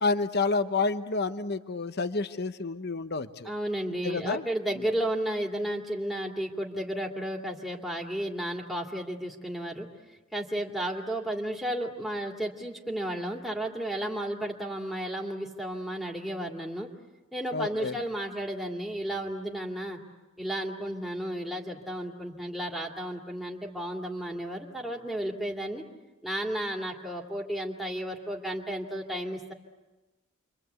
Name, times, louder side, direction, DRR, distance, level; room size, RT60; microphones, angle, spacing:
voice 1, 0.0-3.5 4.0-4.4 17.5-18.0, left 3 dB, 50° left, 10 dB, 1.0 m, -29 dB
voice 2, 3.4-16.9 17.3-20.0 20.4-25.8 26.2-29.5, right 1 dB, ahead, 1 dB, 2.5 m, -33 dB
29.5 x 24.5 x 8.2 m, 1.2 s
head